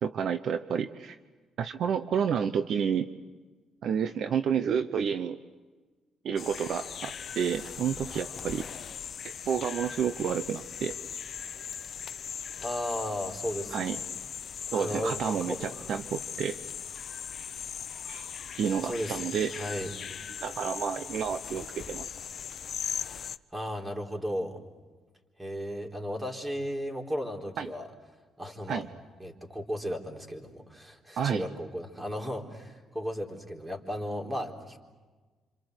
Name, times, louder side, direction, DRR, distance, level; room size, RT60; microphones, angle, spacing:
voice 1, 0.0-1.2 1.6-3.1 3.8-5.4 6.2-8.6 9.5-10.9 13.7-14.0 14.7-16.6 18.1-18.2 18.6-19.5 20.4-22.1 27.6-27.7 28.7-28.9 31.2-31.5, right 7 dB, 65° right, 10 dB, 0.9 m, -30 dB
sound 1, 6.4-23.4, left 7 dB, 55° left, 0.8 m, -39 dB
voice 2, 12.5-14.0 14.7-15.9 18.8-19.2 19.5-19.9 23.5-24.6 25.4-27.9 28.4-28.9 29.2-34.8, equal, 15° right, 2 dB, 4.0 m, -35 dB
27.5 x 26.0 x 8.0 m, 1.3 s
cardioid pair, 90°, 0 cm